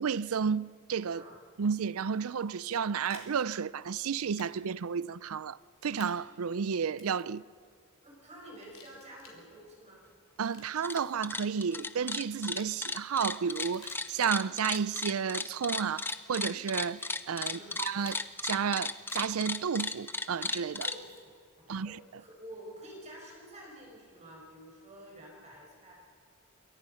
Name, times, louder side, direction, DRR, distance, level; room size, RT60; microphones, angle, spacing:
voice 1, 0.0-1.2 1.6-7.4 10.4-20.9 21.7-22.0, right 6 dB, 85° right, 0.5 m, -32 dB
sound 1, 2.6-3.3 4.4-4.5 4.8-4.9 6.0-6.1 6.9-7.3 8.5-9.3 10.3-11.2 12.4-12.7 13.4-14.2 14.6-15.1 16.1-16.4 17.0-17.1 18.0-18.2 19.1-19.2 20.8-21.2, left 8 dB, 70° left, 4.3 m, -55 dB
voice 2, 8.0-10.0 17.5-17.8 20.8-26.0, right 1 dB, 30° right, 6.0 m, -49 dB
sound 2, 10.7-11.0 11.2-21.0, left 3 dB, 10° left, 0.8 m, -35 dB
28.0 x 23.5 x 5.7 m
head